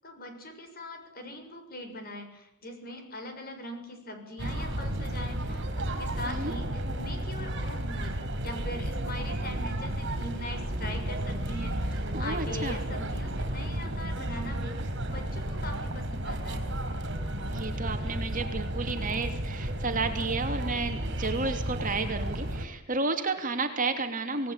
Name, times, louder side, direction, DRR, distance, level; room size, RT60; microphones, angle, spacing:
voice 1, 0.0-8.1 8.4-16.7, left 1 dB, 45° left, 6 dB, 6.8 m, -41 dB
sound 1, 4.4-22.7, right 1 dB, 55° right, 4.8 m, -33 dB
voice 2, 12.1-12.8 17.5-24.5, right 3 dB, 40° right, 6 dB, 2.9 m, -32 dB
27.0 x 18.5 x 8.9 m, 0.80 s
head